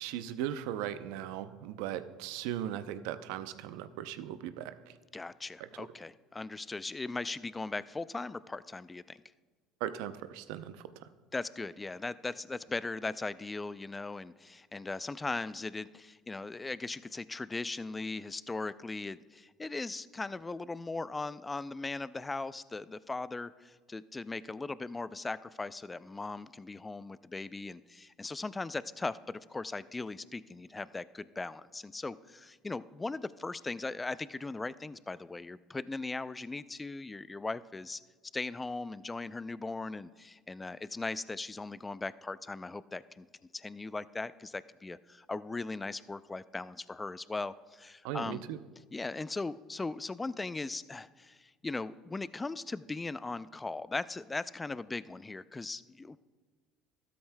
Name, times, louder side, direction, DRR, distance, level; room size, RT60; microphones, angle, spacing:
voice 1, 0.0-4.9 5.6-5.7 9.8-11.1 48.0-48.6, right 11 dB, 75° right, 12 dB, 0.5 m, -38 dB
voice 2, 5.1-9.2 11.3-38.0 38.3-43.3 43.5-48.4 48.9-56.2, left 3 dB, 20° left, 17 dB, 0.4 m, -39 dB
13.5 x 12.5 x 2.2 m, 1.4 s
supercardioid pair, 85°, 0 cm